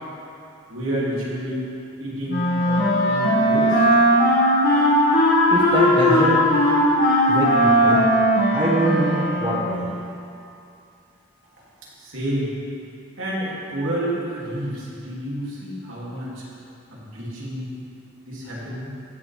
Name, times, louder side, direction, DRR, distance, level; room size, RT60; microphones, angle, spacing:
voice 1, 0.7-1.6 2.0-3.8 12.0-12.5 13.2-16.4 16.9-17.8 18.2-18.9, equal, 85° right, -7 dB, 2.7 m, -29 dB
Wind instrument woodwind instrument, 2.3-9.8, equal, 50° left, 1.9 m, -18 dB
voice 2, 5.5-6.4 7.3-8.0 8.5-9.9, right 2 dB, 25° right, -6 dB, 1.3 m, -23 dB
15.5 x 7.1 x 3.5 m, 2.6 s
head